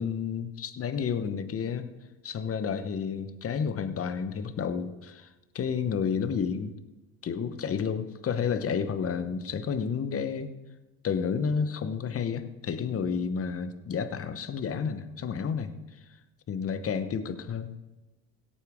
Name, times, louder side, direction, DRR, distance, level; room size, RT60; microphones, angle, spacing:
voice 1, 0.0-1.9 2.2-5.3 5.5-6.7 7.2-10.5 11.0-15.7 16.5-17.7, left 6 dB, 30° left, 11 dB, 1.0 m, -30 dB
17.0 x 8.6 x 3.6 m, 1.1 s
hypercardioid pair, 85°, 47 cm